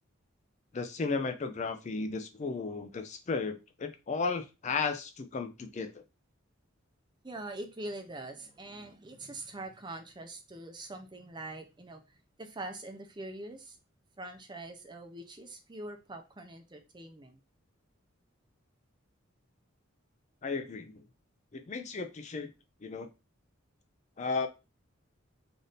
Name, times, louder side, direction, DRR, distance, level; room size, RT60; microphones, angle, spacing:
voice 1, 0.7-6.0 20.4-21.0 21.5-22.5 22.8-23.1 24.2-24.5, left 4 dB, 35° left, 0.4 m, -34 dB
voice 2, 7.2-13.8 14.2-17.4, right 2 dB, 20° right, 0.5 m, -43 dB
3.4 x 2.6 x 3.9 m
head